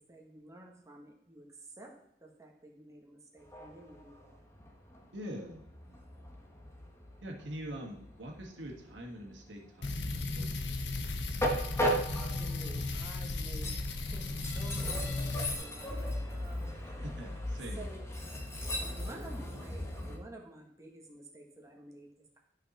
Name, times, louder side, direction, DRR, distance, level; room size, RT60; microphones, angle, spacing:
voice 1, 0.0-1.9 2.2-4.4 12.4-13.8 14.1-14.2 14.5-16.7 17.7-18.3 18.8-22.1, right 1 dB, 20° right, 0 dB, 1.5 m, -51 dB
Train, 3.4-20.2, equal, 15° left, 1.2 m, -38 dB
voice 2, 5.1-5.7 7.2-11.0 17.0-18.0, equal, 80° right, 1 dB, 1.7 m, -44 dB
sound 1, 9.8-15.5, left 2 dB, 70° left, 1.0 m, -35 dB
11.5 x 5.8 x 4.2 m, 0.76 s
head